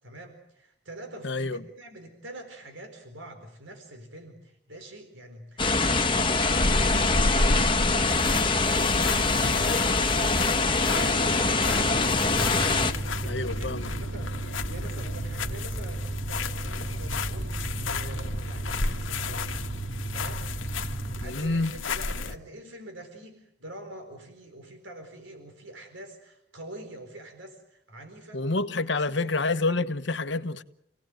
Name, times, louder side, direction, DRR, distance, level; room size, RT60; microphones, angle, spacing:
voice 1, 0.0-10.5 11.0-12.2 12.7-19.7 20.1-20.5 21.2-28.4 29.1-29.4, right 1 dB, 75° right, 4.4 m, -45 dB
voice 2, 1.2-1.6 13.2-13.9 21.2-21.7 28.3-30.6, left 3 dB, 65° left, 1.2 m, -28 dB
sound 1, 5.6-12.9, left 3 dB, 25° left, 1.4 m, -24 dB
sound 2, 6.5-22.4, left 3 dB, 85° left, 1.6 m, -32 dB
sound 3, 11.3-21.2, right 2 dB, 20° right, 1.2 m, -35 dB
29.0 x 18.5 x 9.1 m
head